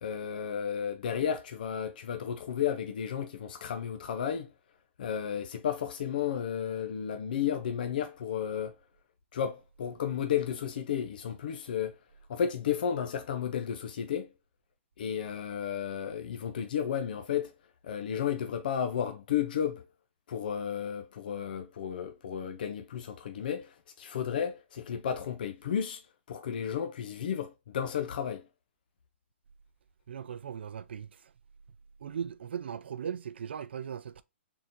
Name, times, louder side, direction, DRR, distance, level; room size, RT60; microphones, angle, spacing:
voice 1, 0.0-4.5 5.0-8.8 9.3-12.0 12.3-14.3 15.0-17.5 17.8-19.8 20.3-26.0 26.3-28.5, left 8 dB, 45° left, 0.5 m, -33 dB
voice 2, 30.1-31.3 32.0-34.2, right 8 dB, 55° right, 0.3 m, -38 dB
4.2 x 3.7 x 2.5 m
hypercardioid pair, 175°, 7 cm